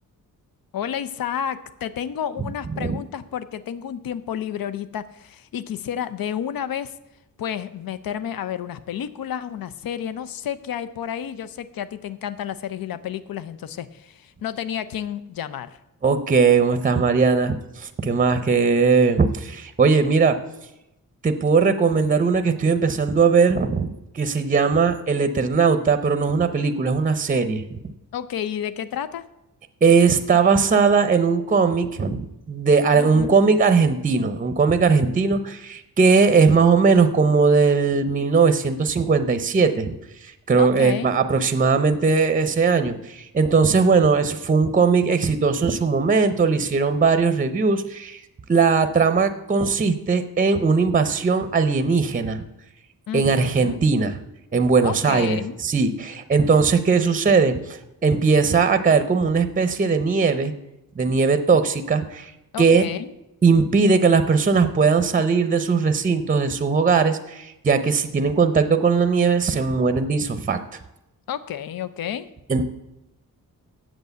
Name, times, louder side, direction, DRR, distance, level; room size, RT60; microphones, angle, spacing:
voice 1, 0.7-6.9 7.4-15.8 28.1-29.2 32.9-33.4 40.6-41.1 53.1-53.8 54.8-55.6 62.5-63.1 71.3-72.3, left 9 dB, 75° left, 13 dB, 0.7 m, -31 dB
voice 2, 16.0-20.4 21.2-23.9 24.1-27.8 29.8-32.2 32.5-39.9 40.2-48.2 48.5-52.4 53.1-54.2 54.5-60.5 61.0-62.3 62.6-62.9 63.4-70.6 72.5-72.6, right 5 dB, 25° right, 10 dB, 0.6 m, -19 dB
8.1 x 7.5 x 8.0 m, 0.90 s
wide cardioid pair, 170°, 35 cm